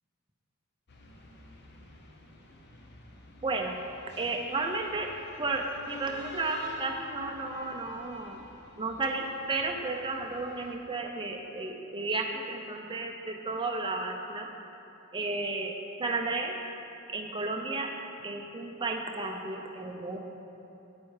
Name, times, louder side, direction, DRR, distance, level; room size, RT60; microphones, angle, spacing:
sound 1, 0.9-10.8, left 2 dB, 50° left, 0.9 m, -51 dB
voice 1, 3.4-3.8 4.2-5.1 5.4-8.4 8.8-14.5 15.1-16.6 17.1-17.9 18.2-20.3, right 3 dB, 20° right, 2 dB, 0.6 m, -33 dB
9.1 x 8.3 x 4.8 m, 2.9 s
head